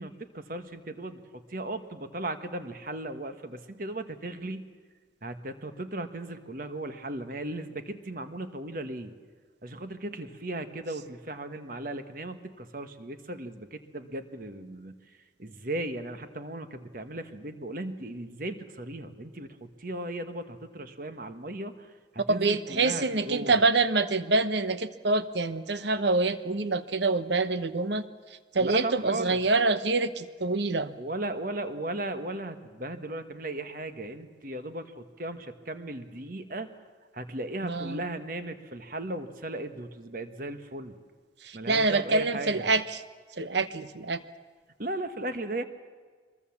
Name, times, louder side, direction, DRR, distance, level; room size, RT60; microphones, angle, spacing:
voice 1, 0.0-4.7 5.2-9.1 9.6-23.6 28.6-29.4 31.0-36.7 37.1-41.0 41.5-42.7 44.8-45.6, right 1 dB, 50° right, 9 dB, 1.4 m, -36 dB
voice 2, 22.3-28.0 28.5-30.9 37.6-38.0 41.4-43.0 43.4-44.2, right 3 dB, 70° right, 12 dB, 1.0 m, -26 dB
24.0 x 22.0 x 7.2 m, 1.5 s
head